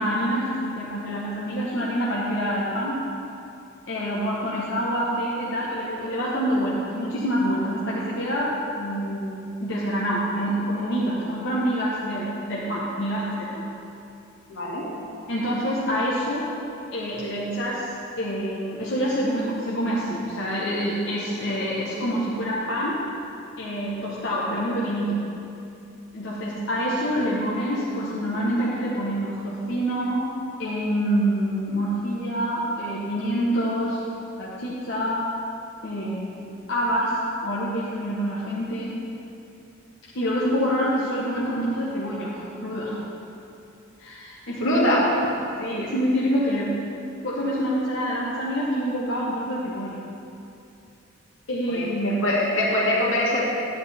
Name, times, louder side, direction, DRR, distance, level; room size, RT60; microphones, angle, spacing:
voice 1, 0.0-3.0 3.9-13.6 15.3-16.5 16.9-23.0 23.6-25.2 26.1-30.3 30.6-34.0 34.4-35.3 35.8-39.0 40.1-43.0 44.0-44.9 45.6-46.7 47.2-50.0 51.5-52.2, equal, 65° left, -7 dB, 1.1 m, -26 dB
voice 2, 14.5-14.9 44.6-45.0 51.7-53.4, left 1 dB, 85° left, -5 dB, 2.1 m, -23 dB
9.3 x 9.1 x 3.4 m, 2.7 s
head